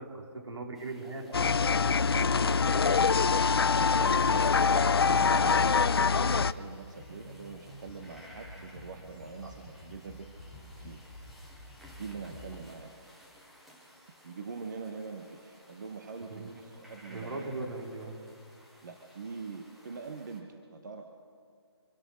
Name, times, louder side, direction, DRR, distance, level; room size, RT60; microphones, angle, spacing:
voice 1, 0.0-1.5 9.4-9.5 16.3-16.6 17.1-18.2, right 2 dB, 75° right, 1 dB, 3.8 m, -39 dB
sound 1, 0.7-20.4, equal, ahead, 0.3 m, -57 dB
sound 2, 1.3-6.5, left 5 dB, 60° left, 0.5 m, -24 dB
voice 2, 2.0-3.0 3.4-4.7 5.0-10.3 10.8-11.0 12.0-13.1 14.2-17.5 18.8-21.1, right 4 dB, 40° right, 4 dB, 1.2 m, -43 dB
sound 3, 5.4-12.7, left 2 dB, 25° left, 2.2 m, -50 dB
25.5 x 8.9 x 6.3 m, 2.3 s
hypercardioid pair, 170°, 14 cm